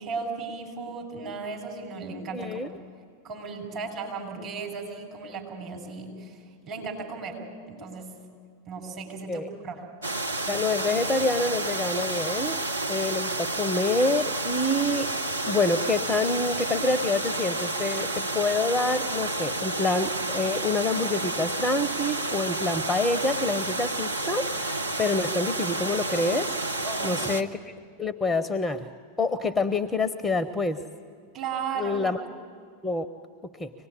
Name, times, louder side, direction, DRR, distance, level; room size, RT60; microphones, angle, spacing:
voice 1, 0.0-2.7 3.2-6.4 6.6-7.4 7.7-8.1 8.7-9.8 26.8-27.3 31.3-32.0, right 4 dB, 35° right, 1 dB, 6.6 m, -35 dB
voice 2, 2.3-2.7 4.4-4.5 9.3-9.5 10.5-15.1 15.5-26.5 27.0-27.7 28.0-28.9 29.2-30.8 31.8-32.2 32.8-33.1 33.6-33.7, left 2 dB, 10° left, 12 dB, 0.8 m, -27 dB
sound 1, 10.0-27.4, right 2 dB, 80° right, 1.1 m, -30 dB
25.0 x 19.5 x 9.8 m, 2.2 s
figure-of-eight pair, 90°, 0 cm